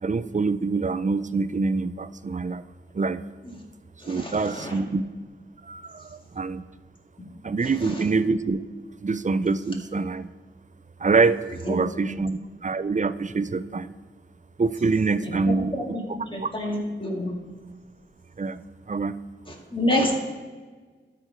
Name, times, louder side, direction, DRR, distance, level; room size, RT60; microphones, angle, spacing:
voice 1, 0.0-2.6 2.9-3.2 4.1-5.0 5.6-6.6 7.4-8.6 9.0-10.3 11.0-13.9 14.6-16.5 18.4-18.6 18.9-19.2, right 4 dB, 40° right, 14 dB, 0.4 m, -25 dB
voice 2, 4.0-4.8 7.2-7.3 7.8-8.0 11.6-12.1 15.2-16.0 16.3-17.3 19.5-20.2, left 1 dB, 25° left, -1 dB, 2.0 m, -28 dB
12.5 x 4.5 x 5.0 m, 1.4 s
wide cardioid pair, 40°, 20 cm